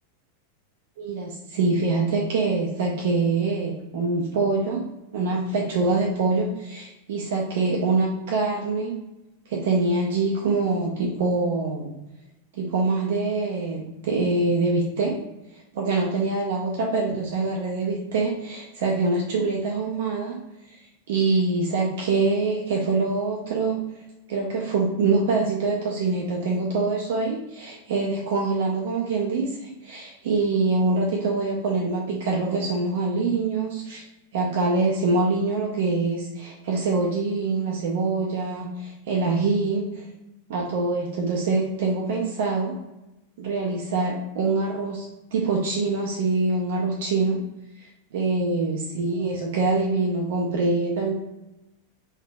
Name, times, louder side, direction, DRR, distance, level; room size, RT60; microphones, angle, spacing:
voice 1, 1.0-4.9 5.1-9.0 9.5-11.9 12.5-15.2 15.7-20.4 21.1-23.8 24.3-34.0 34.3-40.0 40.5-42.8 43.4-47.4 48.1-51.1, right 3 dB, 55° right, -2 dB, 0.5 m, -24 dB
3.3 x 2.7 x 2.3 m, 0.95 s
figure-of-eight pair, 90°, 0 cm